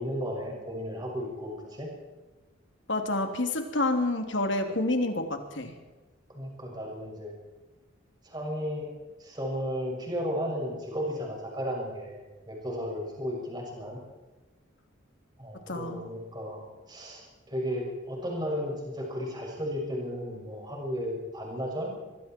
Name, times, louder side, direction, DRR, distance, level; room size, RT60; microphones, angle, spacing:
voice 1, 0.0-1.9 6.3-7.3 8.2-8.9 9.2-14.0 15.4-16.6 16.9-21.9, equal, 20° right, -1 dB, 6.4 m, -34 dB
voice 2, 2.9-5.7 15.7-16.0, left 2 dB, 60° left, 5 dB, 3.1 m, -28 dB
25.0 x 24.0 x 4.6 m, 1.2 s
head